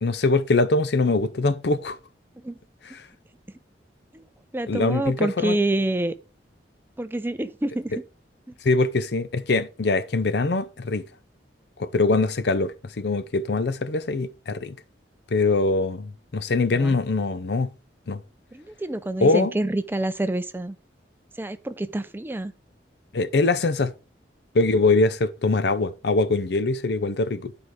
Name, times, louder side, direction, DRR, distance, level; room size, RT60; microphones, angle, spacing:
voice 1, 0.0-2.0 2.8-3.0 4.7-5.6 8.6-11.0 11.8-14.8 15.3-17.7 18.1-18.2 19.2-19.5 23.1-23.9 24.5-27.5, left 3 dB, 65° left, 0.6 m, -23 dB
voice 2, 4.5-6.1 7.0-7.9 16.8-17.0 18.5-20.8 21.4-22.5, right 1 dB, 10° right, 0.5 m, -27 dB
10.5 x 4.8 x 4.7 m
head